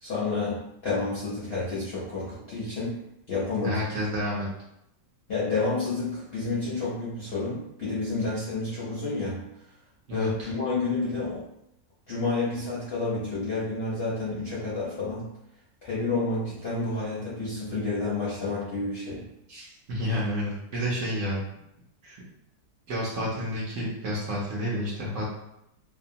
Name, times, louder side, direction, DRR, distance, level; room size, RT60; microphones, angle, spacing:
voice 1, 0.0-3.0 3.3-3.8 5.3-9.4 10.1-11.4 12.1-15.3 15.8-19.2, left 3 dB, 60° left, -9 dB, 0.6 m, -30 dB
voice 2, 3.6-4.5 10.1-10.5 19.5-21.4 22.0-22.2 22.9-25.3, equal, 60° right, -5 dB, 0.9 m, -30 dB
2.8 x 2.0 x 2.7 m, 0.81 s
omnidirectional pair, 1.8 m